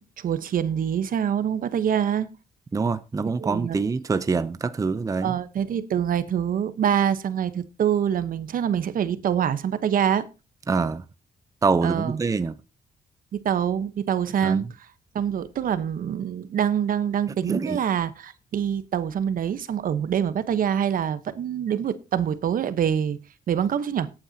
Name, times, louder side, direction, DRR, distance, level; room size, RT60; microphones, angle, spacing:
voice 1, 0.0-2.3 3.4-3.8 5.2-10.3 11.8-12.2 13.4-14.6 15.1-23.2 23.5-24.1, right 9 dB, 65° right, 1.0 m, -25 dB
voice 2, 2.7-5.3 10.7-11.0 11.6-12.5 14.4-14.7 17.4-17.8, right 4 dB, 20° right, 0.6 m, -25 dB
17.5 x 8.8 x 2.8 m
cardioid pair, 105°, 16 cm